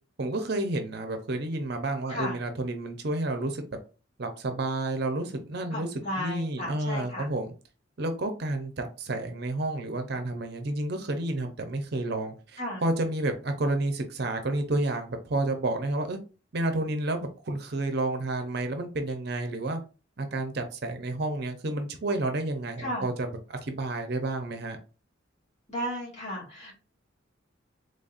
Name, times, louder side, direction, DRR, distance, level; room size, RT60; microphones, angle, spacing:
voice 1, 0.2-3.6 4.2-5.9 6.2-7.5 8.0-16.2 16.5-19.8 20.2-24.8, right 2 dB, 50° right, 6 dB, 0.6 m, -30 dB
voice 2, 2.1-2.4 5.7-7.3 12.6-12.8 22.8-23.1 25.7-26.7, left 1 dB, 35° left, -5 dB, 1.8 m, -34 dB
4.0 x 3.3 x 2.4 m, 0.34 s
head